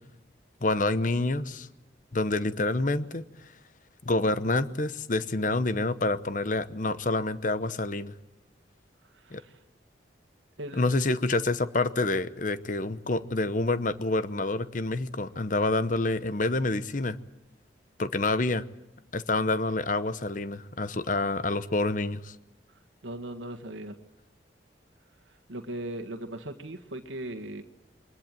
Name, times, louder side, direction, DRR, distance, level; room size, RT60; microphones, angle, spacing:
voice 1, 0.6-1.7 2.1-3.2 4.0-8.1 9.3-9.4 10.7-17.2 18.0-18.6 19.1-22.3, left 2 dB, 45° left, 14 dB, 0.9 m, -27 dB
voice 2, 10.6-10.9 23.0-24.0 25.5-27.6, right 1 dB, 90° right, 5 dB, 1.6 m, -38 dB
23.0 x 20.5 x 9.1 m, 0.90 s
head